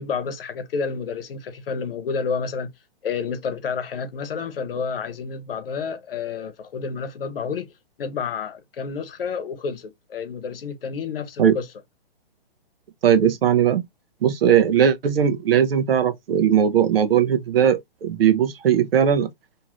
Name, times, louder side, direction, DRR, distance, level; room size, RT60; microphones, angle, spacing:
voice 1, 0.0-2.7 3.0-11.7, left 5 dB, 70° left, 0.8 m, -30 dB
voice 2, 13.0-13.8 14.2-19.3, right 8 dB, 75° right, 0.7 m, -19 dB
2.7 x 2.4 x 2.9 m
hypercardioid pair, 160°, 29 cm